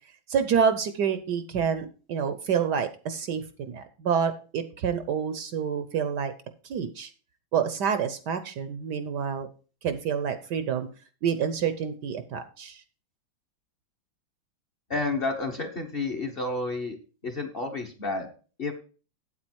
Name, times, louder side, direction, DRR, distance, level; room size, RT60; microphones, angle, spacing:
voice 1, 0.3-6.3 6.6-7.1 7.5-9.5 9.8-10.9 11.2-12.8, right 7 dB, 65° right, 10 dB, 1.2 m, -28 dB
voice 2, 14.9-17.0 17.2-18.3 18.6-18.7, left 3 dB, 35° left, 5 dB, 1.1 m, -30 dB
8.4 x 8.3 x 4.5 m, 0.36 s
omnidirectional pair, 2.2 m